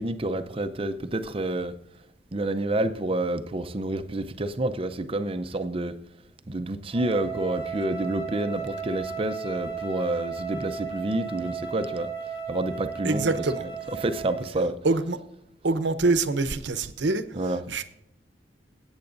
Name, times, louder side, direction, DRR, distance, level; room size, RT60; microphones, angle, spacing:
voice 1, 0.0-1.7 2.3-5.9 6.5-12.1 12.5-14.7 17.3-17.6, right 1 dB, 30° right, 0.6 m, -29 dB
Wind instrument woodwind instrument, 6.9-14.6, right 6 dB, 15° right, 1.0 m, -35 dB
voice 2, 13.0-13.7 14.8-15.2 15.6-17.8, right 3 dB, 85° right, 0.8 m, -25 dB
20.5 x 8.9 x 2.6 m
head